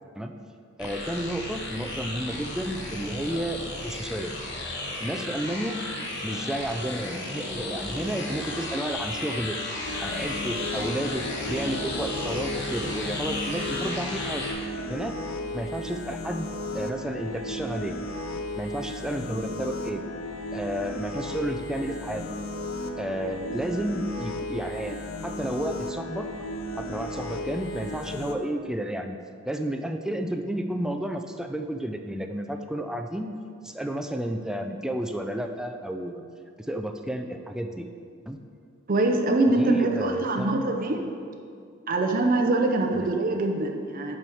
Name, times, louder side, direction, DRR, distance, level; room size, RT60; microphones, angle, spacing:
sound 1, 0.8-14.5, left 2 dB, 60° left, 1.1 m, -34 dB
voice 1, 0.8-4.3 5.0-5.8 6.2-9.6 10.0-14.5 14.9-15.2 15.5-16.5 16.7-18.0 18.6-20.0 20.5-22.3 23.0-26.3 26.8-29.2 29.4-33.4 33.6-36.2 36.6-37.9 38.3-38.4 39.6-40.7 42.9-43.1, right 1 dB, 5° right, 5 dB, 0.3 m, -31 dB
sound 2, 9.8-28.3, left 1 dB, 80° left, 0.6 m, -35 dB
voice 2, 38.9-41.0 41.9-44.2, right 2 dB, 45° right, 3 dB, 0.6 m, -24 dB
6.0 x 4.6 x 6.4 m, 2.3 s
head